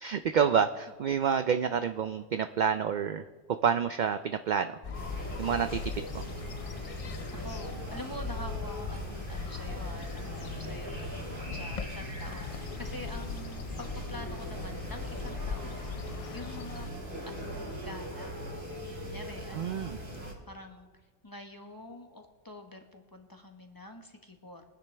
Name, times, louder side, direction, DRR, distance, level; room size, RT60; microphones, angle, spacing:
voice 1, 0.0-3.3 3.6-4.8 5.4-6.2 19.5-20.0, right 7 dB, 70° right, 9 dB, 0.4 m, -28 dB
sound 1, 4.8-16.9, left 5 dB, 60° left, 0.3 m, -40 dB
sound 2, 4.9-20.3, right 1 dB, 45° right, 2.4 m, -40 dB
voice 2, 7.3-10.3 10.6-15.8 16.3-16.9 17.3-18.3 19.0-19.8 20.2-20.9 21.2-24.6, left 1 dB, 20° left, 4 dB, 1.1 m, -46 dB
22.5 x 10.0 x 3.3 m, 1.4 s
omnidirectional pair, 1.3 m